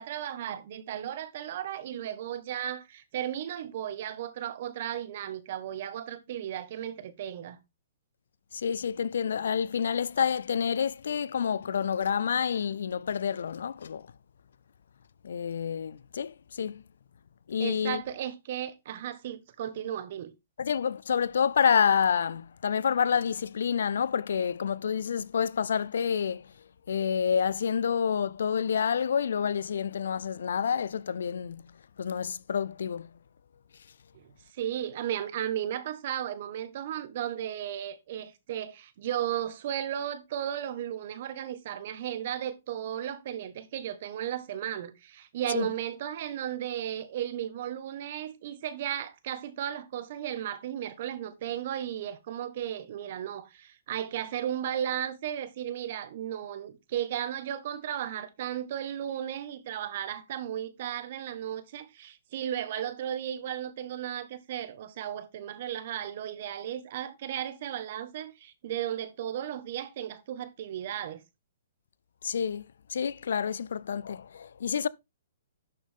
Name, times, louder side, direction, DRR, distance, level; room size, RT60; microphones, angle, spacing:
voice 1, 0.0-7.6 17.6-20.3 34.1-71.2, right 10 dB, 45° right, 1.5 m, -35 dB
voice 2, 8.5-14.1 15.2-16.8 17.5-18.0 20.6-26.5 26.9-31.6 32.0-33.1 45.5-45.7 72.2-72.6 72.9-74.9, left 7 dB, 75° left, 0.5 m, -28 dB
11.5 x 6.6 x 3.7 m
hypercardioid pair, 165°, 0 cm